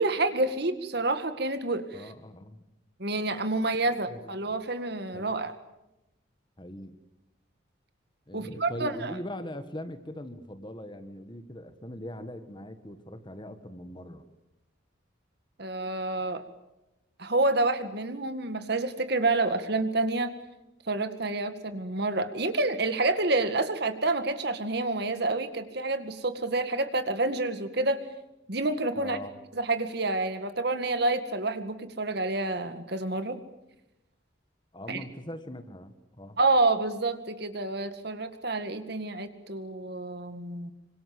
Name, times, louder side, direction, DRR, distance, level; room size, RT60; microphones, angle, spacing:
voice 1, 0.0-2.0 3.0-5.5 8.3-9.1 15.6-16.4 17.2-20.3 20.9-28.0 28.5-29.2 29.6-33.4 34.9-35.0 36.4-40.7, right 2 dB, 55° right, 10 dB, 2.0 m, -28 dB
voice 2, 1.9-2.6 4.1-4.6 5.1-5.4 6.6-7.0 8.3-14.3 29.0-29.3 34.7-36.4, left 1 dB, 25° left, 9 dB, 1.7 m, -41 dB
26.5 x 25.5 x 7.9 m, 0.92 s
head